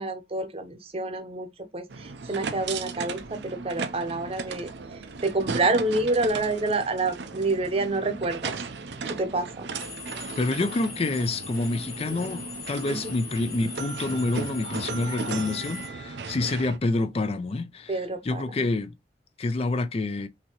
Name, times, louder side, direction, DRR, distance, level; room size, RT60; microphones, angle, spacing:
voice 1, 0.0-8.5 9.0-9.7 12.9-13.1 17.9-18.5, right 2 dB, 35° right, 0.7 m, -28 dB
sound 1, 1.9-16.8, right 4 dB, 70° right, 0.5 m, -36 dB
sound 2, 9.8-15.9, left 6 dB, 55° left, 1.3 m, -41 dB
voice 2, 10.4-18.9 19.4-20.3, left 2 dB, 35° left, 0.4 m, -28 dB
5.7 x 2.8 x 2.9 m
head